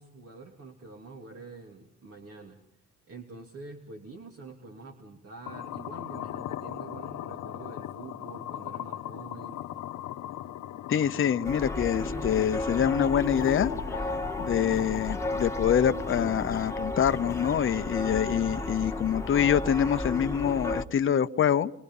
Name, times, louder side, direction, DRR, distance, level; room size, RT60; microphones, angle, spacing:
voice 1, 0.0-2.6 3.1-9.6, right 3 dB, 50° right, 2.9 m, -46 dB
sound 1, 5.4-19.5, left 12 dB, 80° left, 1.2 m, -40 dB
voice 2, 10.9-13.7 14.4-21.7, left 9 dB, 45° left, 0.9 m, -25 dB
sound 2, 11.4-20.9, left 2 dB, 10° left, 1.6 m, -33 dB
28.0 x 23.0 x 5.5 m
cardioid pair, 90°, 30 cm